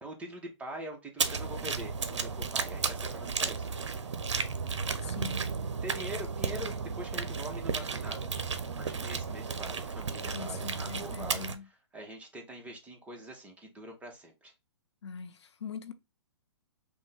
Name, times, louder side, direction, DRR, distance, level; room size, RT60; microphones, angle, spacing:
voice 1, 0.0-4.5 5.0-5.3 5.8-8.3 8.7-11.5 11.9-14.5, equal, 10° right, 0.9 m, -44 dB
sound 1, 1.2-11.5, right 5 dB, 75° right, 0.6 m, -34 dB
voice 2, 5.0-5.5 10.3-11.6 15.0-15.9, left 6 dB, 70° left, 0.5 m, -42 dB
5.3 x 2.2 x 3.4 m
figure-of-eight pair, 125°, 15 cm